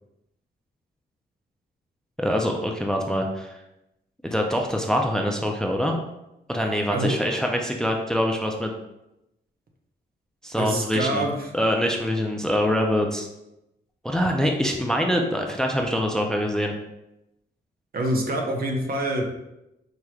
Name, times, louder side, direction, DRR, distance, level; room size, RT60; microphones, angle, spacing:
voice 1, 2.2-3.6 4.2-6.0 6.5-8.7 10.4-11.3 11.5-13.3 14.0-16.7, equal, 5° left, 2 dB, 0.5 m, -24 dB
voice 2, 10.6-11.5 17.9-19.2, right 1 dB, 55° right, 1 dB, 0.8 m, -26 dB
4.9 x 3.0 x 2.3 m, 0.90 s
cardioid pair, 80°, 19 cm